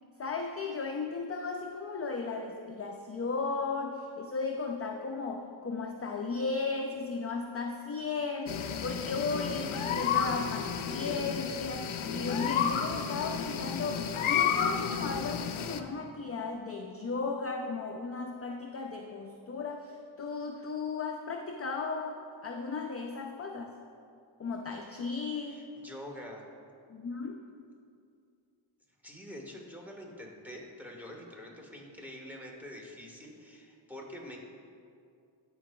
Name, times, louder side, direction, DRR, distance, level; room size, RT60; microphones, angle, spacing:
voice 1, 0.2-23.7 24.4-25.6 26.9-27.4, left 4 dB, 30° left, 3 dB, 0.4 m, -35 dB
sound 1, 8.5-15.8, left 7 dB, 85° left, 0.5 m, -32 dB
voice 2, 25.5-26.4 29.0-34.4, left 1 dB, 5° right, -1 dB, 1.3 m, -46 dB
13.5 x 4.6 x 2.3 m, 2.4 s
cardioid pair, 60°, 47 cm